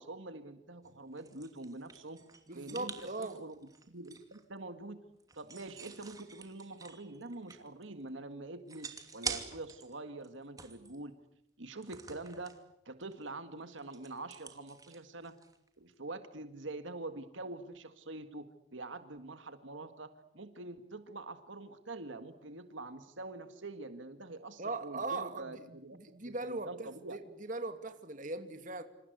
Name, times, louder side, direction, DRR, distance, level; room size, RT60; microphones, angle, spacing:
voice 1, 0.0-2.2 2.5-3.5 3.9-5.0 5.3-11.1 11.6-12.6 12.9-15.4 15.8-27.2, right 2 dB, 75° right, 9 dB, 1.8 m, -45 dB
sound 1, 0.8-4.4 5.2-7.8 8.1-8.2 8.7-9.9 10.2-11.0 11.8-12.6 13.0-13.3 13.5-15.7, right 5 dB, 20° right, 2.7 m, -46 dB
voice 2, 2.5-3.4 24.6-25.6 25.9-28.8, right 3 dB, 40° right, 8 dB, 2.6 m, -39 dB
27.5 x 27.0 x 8.0 m, 0.76 s
head